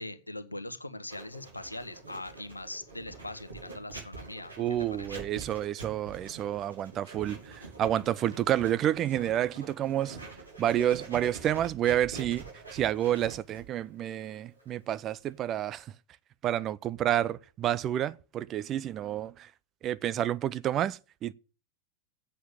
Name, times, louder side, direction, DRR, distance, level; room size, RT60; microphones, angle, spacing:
voice 1, 0.0-4.6 5.0-5.1, left 1 dB, 85° left, 1.2 m, -41 dB
Writing, 1.1-15.8, right 4 dB, 80° right, 4.8 m, -46 dB
voice 2, 4.6-10.2 10.6-12.4 12.7-15.9 16.4-19.5 19.8-21.3, right 11 dB, 30° right, 0.5 m, -29 dB
8.6 x 7.6 x 8.9 m
figure-of-eight pair, 90°, 0 cm